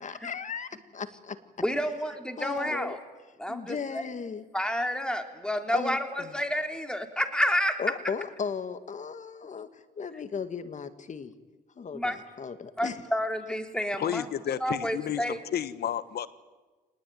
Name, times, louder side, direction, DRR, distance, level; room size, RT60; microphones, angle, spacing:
voice 1, 0.0-1.4 2.4-3.0 3.5-4.5 5.7-6.3 7.8-11.3 11.8-13.0, left 6 dB, 40° left, 11 dB, 2.0 m, -36 dB
voice 2, 1.6-3.0 3.4-4.0 4.5-7.8 11.9-12.2 12.8-15.4, equal, 5° left, 5 dB, 3.3 m, -30 dB
voice 3, 14.0-16.3, left 10 dB, 60° left, 14 dB, 1.5 m, -31 dB
24.5 x 20.0 x 9.5 m, 1.3 s
supercardioid pair, 75°, 18 cm